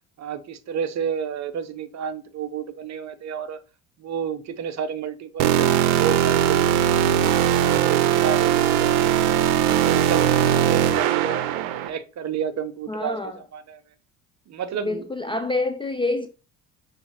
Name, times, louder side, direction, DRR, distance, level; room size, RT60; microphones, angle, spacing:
voice 1, 0.2-3.6 4.0-9.2 9.7-11.5 11.9-13.8 14.5-15.0, right 7 dB, 40° right, 0.7 m, -31 dB
sound 1, 5.4-11.9, right 10 dB, 65° right, 0.7 m, -20 dB
voice 2, 12.9-13.4 14.7-16.3, left 2 dB, 10° left, 0.4 m, -27 dB
6.9 x 2.7 x 2.8 m
hypercardioid pair, 65°, 45 cm